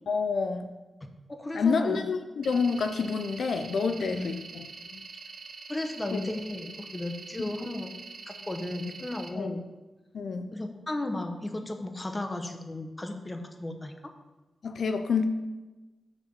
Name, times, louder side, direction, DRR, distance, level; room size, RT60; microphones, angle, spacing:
voice 1, 0.1-0.7 1.5-4.7 4.9-5.0 6.1-6.2 7.4-7.5 9.3-9.5 10.1-10.5 14.6-15.2, left 5 dB, 75° left, 7 dB, 0.5 m, -28 dB
voice 2, 1.3-2.1 4.0-4.4 5.7-7.9 8.3-9.6 10.5-13.9, left 2 dB, 20° left, 5 dB, 0.9 m, -35 dB
sound 1, 2.4-9.3, right 4 dB, 75° right, 0.9 m, -45 dB
6.5 x 4.9 x 6.8 m, 1.2 s
wide cardioid pair, 95°, 0 cm